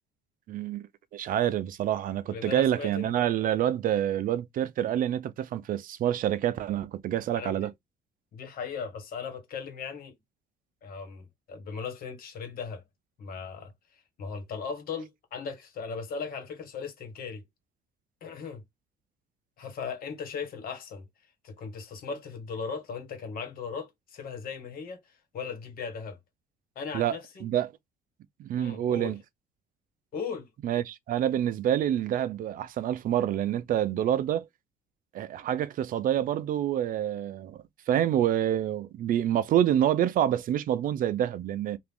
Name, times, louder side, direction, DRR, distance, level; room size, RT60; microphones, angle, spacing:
voice 1, 0.5-0.8 1.1-7.7 26.9-27.7 28.4-29.2 30.6-34.5 35.1-41.8, right 11 dB, 55° right, 0.4 m, -27 dB
voice 2, 2.3-3.1 7.3-7.7 8.3-10.1 10.8-12.8 13.2-13.7 14.2-17.4 18.2-18.6 19.6-21.0 21.4-25.0 25.3-26.2 26.7-27.4 28.6-29.1 30.1-30.5, left 5 dB, 60° left, 1.5 m, -37 dB
2.9 x 2.5 x 3.5 m
cardioid pair, 110°, 17 cm